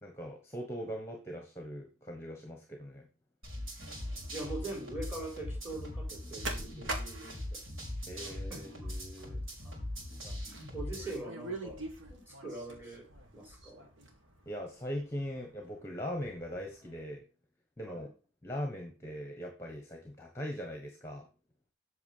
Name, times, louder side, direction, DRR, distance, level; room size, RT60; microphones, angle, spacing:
voice 1, 0.0-3.1 8.1-9.4 14.4-17.2 17.8-18.1 18.4-21.3, equal, 15° left, 3 dB, 1.4 m, -40 dB
sound 1, 3.4-11.2, left 1 dB, 85° right, 5.3 m, -41 dB
sound 2, 4.0-17.0, right 2 dB, 70° right, 2.3 m, -47 dB
voice 2, 4.3-7.6 8.1-8.9 9.2-9.4 10.0-11.8 12.1-13.9 17.9-18.1, right 2 dB, 10° right, -1 dB, 4.5 m, -43 dB
8.4 x 6.7 x 5.6 m, 0.34 s
head